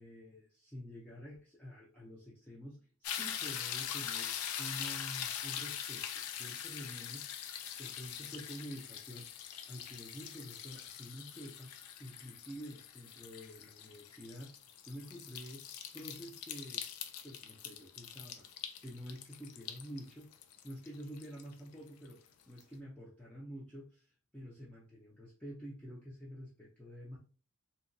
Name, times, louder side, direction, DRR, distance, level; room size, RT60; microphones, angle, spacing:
voice 1, 0.0-6.0 6.4-7.3 7.8-9.3 9.7-11.7 12.0-14.5 14.9-15.6 15.9-16.8 17.2-18.5 18.8-20.3 20.6-22.2 22.5-24.1 24.3-27.2, equal, 5° left, -6 dB, 0.4 m, -48 dB
sound 1, 3.0-22.1 22.6-22.7, left 9 dB, 80° left, 0.4 m, -43 dB
2.7 x 2.2 x 2.5 m, 0.38 s
head